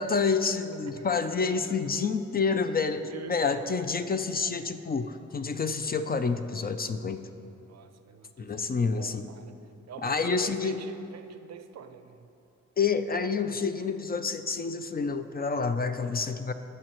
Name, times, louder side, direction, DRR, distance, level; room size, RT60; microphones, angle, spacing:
voice 1, 0.0-7.3 8.4-9.2 10.0-10.8 12.8-16.5, left 5 dB, 30° left, 9 dB, 0.4 m, -28 dB
voice 2, 1.0-1.8 2.3-2.5 3.1-3.8 7.7-9.5 9.9-12.3, right 7 dB, 60° right, 9 dB, 0.6 m, -45 dB
16.5 x 6.6 x 3.0 m, 2.8 s
cardioid pair, 85°, 29 cm